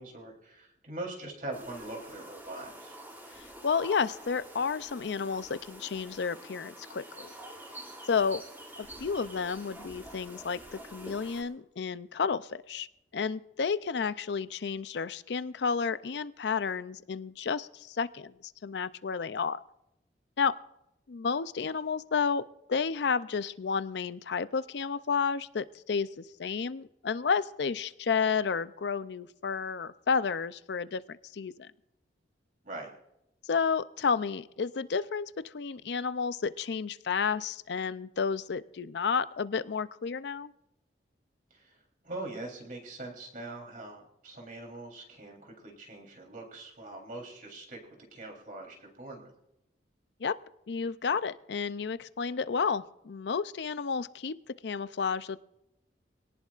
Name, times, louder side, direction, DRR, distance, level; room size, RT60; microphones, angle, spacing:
voice 1, 0.0-3.0 32.6-32.9 41.5-41.8 42.0-47.8 48.1-49.3, right 2 dB, 50° right, 1 dB, 3.5 m, -42 dB
sound 1, 1.5-11.4, right 1 dB, 15° right, 3.1 m, -47 dB
voice 2, 3.6-7.3 8.1-8.4 8.8-12.9 13.1-19.6 20.4-20.6 21.1-22.4 22.7-31.7 33.4-40.5 50.2-50.4 50.7-54.3 54.6-55.4, left 5 dB, 75° left, 15 dB, 0.5 m, -31 dB
24.5 x 18.0 x 2.5 m, 0.84 s
head